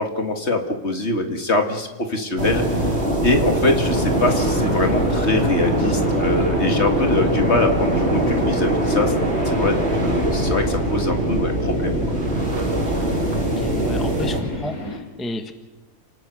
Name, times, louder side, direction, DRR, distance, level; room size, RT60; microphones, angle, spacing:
voice 1, 0.0-9.1 9.5-12.0, left 2 dB, 45° left, 5 dB, 2.2 m, -23 dB
sound 1, 2.4-14.4, right 1 dB, 40° right, 3.9 m, -22 dB
Howling Wind, 3.8-15.0, equal, 60° left, 3.6 m, -34 dB
voice 2, 13.4-15.5, left 1 dB, ahead, 6 dB, 1.1 m, -32 dB
30.0 x 18.5 x 6.4 m, 1.2 s
omnidirectional pair, 1.7 m